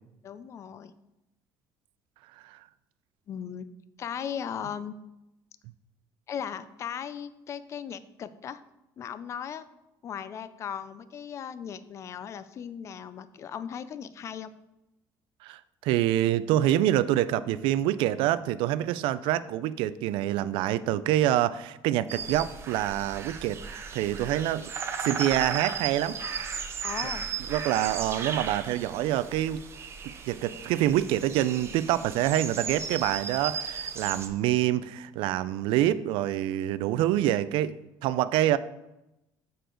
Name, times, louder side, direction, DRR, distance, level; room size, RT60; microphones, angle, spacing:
voice 1, 0.2-0.9 3.3-3.7 4.0-5.0 6.3-8.6 9.0-9.6 10.0-14.5 26.8-27.3, left 8 dB, 35° left, 14 dB, 0.4 m, -37 dB
voice 2, 15.4-23.6 23.9-24.7 25.0-26.2 27.5-29.6 30.0-38.6, right 13 dB, 80° right, 16 dB, 0.4 m, -26 dB
sound 1, 22.1-34.3, right 6 dB, 30° right, 0.6 m, -36 dB
6.9 x 6.5 x 3.8 m, 0.93 s
cardioid pair, 160°, 9 cm